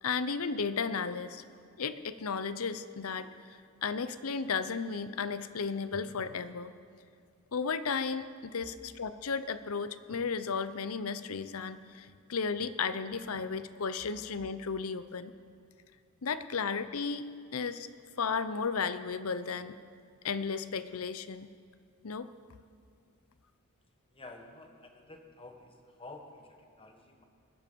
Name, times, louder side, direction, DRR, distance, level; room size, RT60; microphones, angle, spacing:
voice 1, 0.0-1.4 1.8-6.7 7.5-15.3 16.2-17.9 18.2-19.7 20.2-21.5 22.0-22.3, left 5 dB, 70° left, 13 dB, 0.7 m, -34 dB
voice 2, 24.1-27.2, left 2 dB, 25° left, 4 dB, 1.5 m, -50 dB
21.0 x 12.5 x 5.4 m, 2.2 s
head